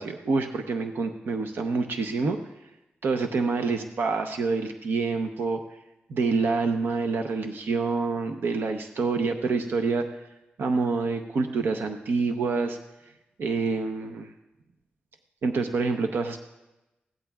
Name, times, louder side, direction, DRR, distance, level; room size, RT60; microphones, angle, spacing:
voice 1, 0.0-2.4 3.0-5.6 6.1-10.1 10.6-12.8 13.4-14.3 15.4-16.4, right 4 dB, 80° right, 5 dB, 0.8 m, -27 dB
20.5 x 16.5 x 2.4 m, 0.99 s
wide cardioid pair, 160°, 4 cm